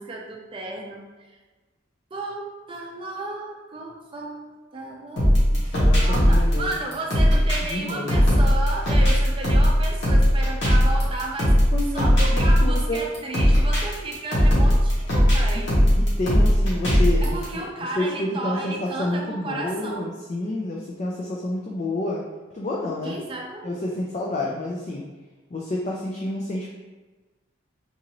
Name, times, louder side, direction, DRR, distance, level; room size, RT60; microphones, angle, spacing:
voice 1, 0.0-1.4 2.1-11.5 11.9-15.8 17.2-20.1 23.0-23.8, right 2 dB, 25° right, 0 dB, 0.5 m, -33 dB
sound 1, 5.2-17.4, equal, 65° left, 1.3 m, -18 dB
voice 2, 5.7-6.8 7.6-8.1 11.7-13.0 15.5-15.6 16.0-17.6 18.0-22.2 22.5-23.1 23.6-25.0 25.5-26.7, left 1 dB, 35° left, -3 dB, 0.4 m, -29 dB
3.9 x 2.5 x 2.9 m, 1.3 s
head